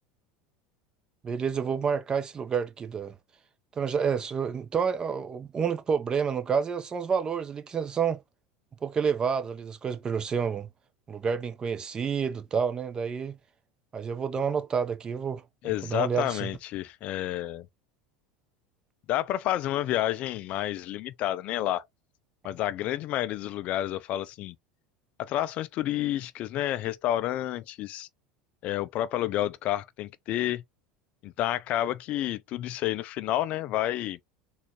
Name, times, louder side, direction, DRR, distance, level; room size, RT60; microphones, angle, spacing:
voice 1, 1.2-3.2 3.8-8.2 8.8-10.7 11.1-13.4 13.9-15.4 15.8-16.5, right 6 dB, 30° right, 0.7 m, -29 dB
voice 2, 15.6-17.7 19.1-21.9 22.4-24.6 25.2-28.1 28.6-30.6 31.2-34.2, left 13 dB, 50° left, 0.3 m, -30 dB
3.7 x 2.3 x 3.0 m
hypercardioid pair, 90°, 3 cm